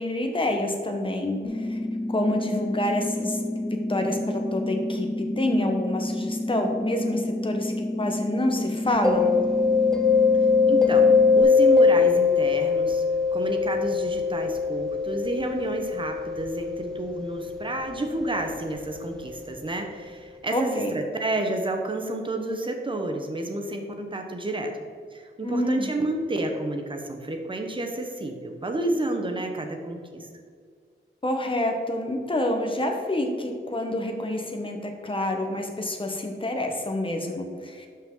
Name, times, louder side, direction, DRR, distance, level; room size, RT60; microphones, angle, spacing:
voice 1, 0.0-1.8 2.1-3.4 3.7-9.4 20.5-20.9 25.4-25.9 31.2-37.9, left 1 dB, 25° left, 3 dB, 1.2 m, -27 dB
sound 1, 1.4-11.4, left 1 dB, 65° left, 2.4 m, -30 dB
Mallet percussion, 9.0-18.6, left 5 dB, 5° left, 0.7 m, -22 dB
voice 2, 10.7-13.0 13.3-24.7 25.1-30.3, right 2 dB, 25° right, 4 dB, 1.0 m, -30 dB
12.0 x 5.7 x 3.9 m, 2.1 s
wide cardioid pair, 140°, 20 cm